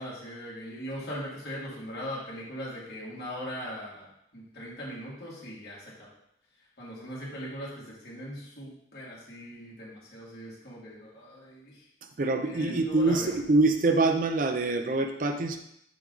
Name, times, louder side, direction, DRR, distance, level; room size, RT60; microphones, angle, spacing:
voice 1, 0.0-4.1 4.3-6.1 6.8-11.8 12.4-13.3, equal, 60° left, -7 dB, 2.5 m, -40 dB
voice 2, 12.2-15.6, right 2 dB, 45° right, 6 dB, 0.5 m, -25 dB
6.1 x 4.8 x 3.9 m, 0.77 s
head